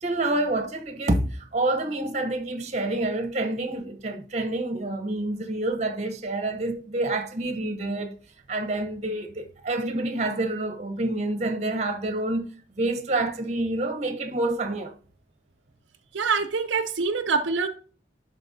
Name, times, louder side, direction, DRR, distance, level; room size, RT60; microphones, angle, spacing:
voice 1, 0.0-8.2 8.5-12.5 12.8-14.9, right 2 dB, 35° right, 0.9 m, -28 dB
voice 2, 16.1-17.7, right 5 dB, 75° right, 0.6 m, -25 dB
11.5 x 4.2 x 2.7 m
head